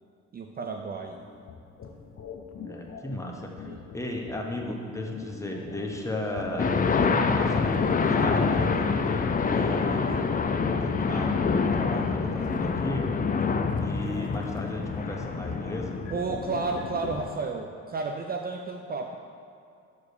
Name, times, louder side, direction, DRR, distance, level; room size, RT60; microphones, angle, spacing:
voice 1, 0.3-1.2 3.6-3.9 16.1-19.2, right 4 dB, 30° right, 4 dB, 0.5 m, -33 dB
sound 1, 1.2-17.2, left 5 dB, 55° left, 0.9 m, -42 dB
voice 2, 2.6-6.7 7.0-10.2 10.8-13.1 13.8-16.0, left 1 dB, 10° left, 0 dB, 1.1 m, -36 dB
sound 2, 6.6-17.3, left 4 dB, 30° left, 0.5 m, -26 dB
6.5 x 4.9 x 6.5 m, 2.5 s
cardioid pair, 90°, 30 cm